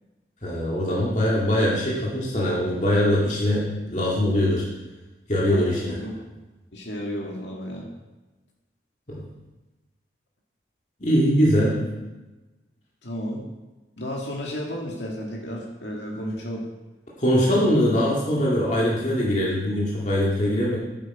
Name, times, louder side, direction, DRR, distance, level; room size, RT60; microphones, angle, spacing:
voice 1, 0.4-4.7 5.3-6.0 9.1-9.2 11.0-11.8 17.2-20.8, equal, 40° left, -5 dB, 2.1 m, -22 dB
voice 2, 5.5-6.2 6.7-7.9 13.0-13.5 14.0-16.6, equal, 75° left, -2 dB, 2.1 m, -32 dB
11.5 x 7.9 x 4.8 m, 1.1 s
head